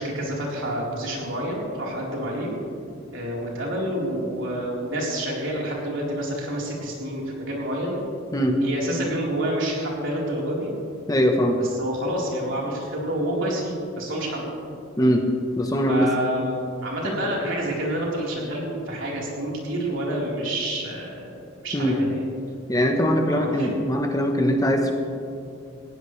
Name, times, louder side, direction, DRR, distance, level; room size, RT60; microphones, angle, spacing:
voice 1, 0.0-2.5 3.1-8.0 8.6-10.7 11.6-14.5 15.9-21.4 21.6-22.2 23.3-23.7, right 1 dB, 70° right, -4 dB, 4.0 m, -28 dB
voice 2, 11.1-11.6 15.0-15.2 15.6-16.1 17.0-17.1 21.7-22.0 22.7-24.9, equal, 15° left, 3 dB, 1.0 m, -21 dB
19.0 x 15.5 x 3.3 m, 2.5 s
head